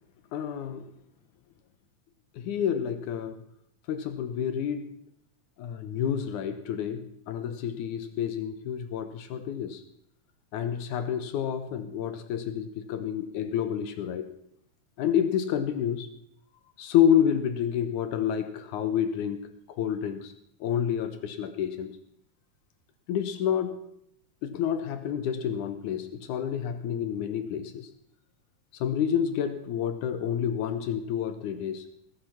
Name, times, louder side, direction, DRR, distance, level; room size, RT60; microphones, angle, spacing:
voice 1, 0.3-0.9 2.4-3.4 3.9-5.0 5.6-9.8 10.5-14.3 15.0-16.1 16.8-19.5 19.8-20.3 20.6-22.0 23.1-23.8 24.4-27.9 28.8-31.8, left 9 dB, 80° left, 9 dB, 2.4 m, -29 dB
20.5 x 8.5 x 5.8 m, 0.71 s
omnidirectional pair, 3.5 m